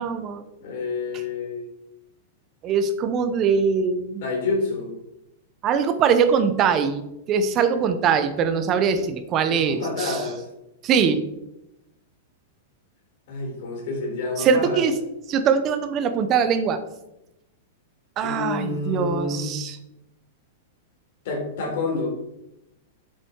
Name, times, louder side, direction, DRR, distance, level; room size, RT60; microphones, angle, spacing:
voice 1, 0.0-0.4 1.1-1.2 2.6-4.2 5.6-10.2 10.8-11.2 14.4-15.0 15.3-16.8 18.2-19.8, right 6 dB, 25° right, 9 dB, 1.0 m, -22 dB
voice 2, 0.6-1.7 4.2-4.9 9.5-10.5 13.3-14.8 18.2-19.5 21.2-22.1, left 3 dB, 55° left, 0 dB, 4.3 m, -28 dB
10.0 x 7.6 x 4.7 m, 0.87 s
supercardioid pair, 165°, 0 cm